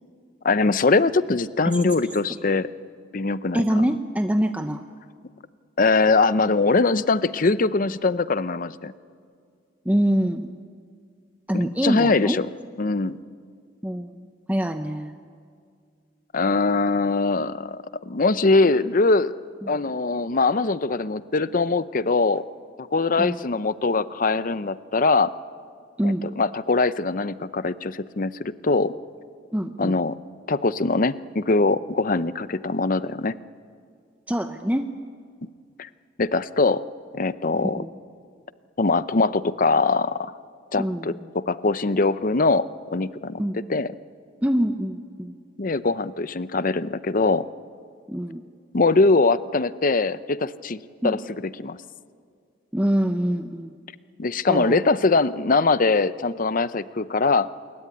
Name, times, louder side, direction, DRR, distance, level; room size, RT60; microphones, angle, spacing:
voice 1, 0.4-2.7 3.1-3.6 5.8-8.9 11.5-12.5 12.8-13.2 16.3-17.8 18.1-19.3 19.7-22.4 22.8-25.3 26.0-28.9 29.8-30.2 30.5-33.3 35.8-35.9 36.2-36.8 37.1-37.8 38.8-40.3 40.7-43.4 43.7-43.9 45.6-47.4 48.7-50.8 51.0-51.2 51.6-51.8 54.2-57.5, left 3 dB, 50° left, 14 dB, 0.7 m, -22 dB
voice 2, 3.5-4.8 9.8-10.5 11.5-12.4 13.8-15.2 19.6-19.8 23.2-23.4 26.0-26.2 29.5-30.0 34.3-34.9 37.6-37.9 40.8-41.3 43.4-43.7 44.4-45.4 48.1-48.4 51.0-51.2 52.7-53.8 54.5-54.8, equal, 10° right, 6 dB, 0.8 m, -25 dB
28.0 x 22.0 x 9.6 m, 2.2 s
head